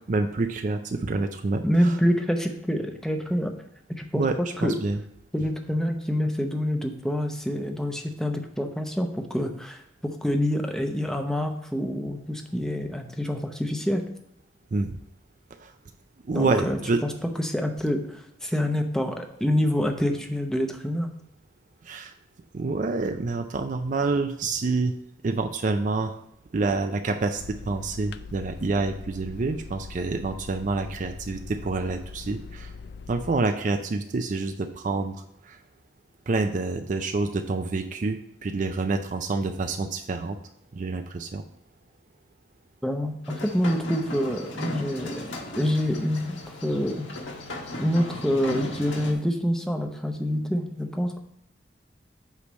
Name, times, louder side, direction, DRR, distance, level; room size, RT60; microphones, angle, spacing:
voice 1, 0.1-1.9 4.1-4.3 4.6-5.0 14.7-14.9 15.6-15.7 16.3-17.0 21.9-22.1 22.5-24.9 25.2-26.2 26.5-32.7 33.1-35.1 35.5-35.6 36.3-40.4 40.7-41.4, right 3 dB, 45° right, 6 dB, 0.4 m, -27 dB
voice 2, 1.6-3.5 3.9-4.2 4.6-4.7 5.3-9.8 10.2-14.0 16.3-21.1 42.8-45.1 45.5-47.1 47.8-51.2, equal, 5° left, 4 dB, 0.7 m, -26 dB
sound 1, 27.4-33.4, left 4 dB, 60° left, 0.4 m, -41 dB
sound 2, 43.2-49.1, left 1 dB, 85° left, 1.5 m, -36 dB
8.3 x 3.3 x 6.1 m, 0.80 s
head